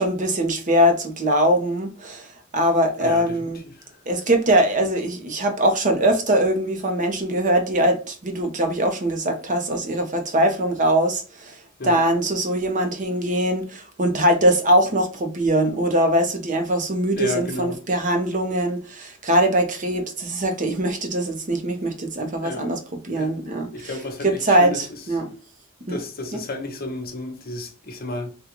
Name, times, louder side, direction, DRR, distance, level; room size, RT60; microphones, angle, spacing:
voice 1, 0.0-2.3 2.5-3.6 4.1-11.6 11.8-22.8 23.0-24.0 24.2-25.3 25.9-26.0, right 1 dB, 40° right, 0.7 m, -22 dB
voice 2, 3.0-3.5 3.8-3.9 11.8-12.0 17.1-17.8 22.4-22.7 23.1-23.4 23.7-25.0 25.9-28.3, left 2 dB, 45° left, 0.9 m, -32 dB
3.6 x 2.3 x 2.9 m
head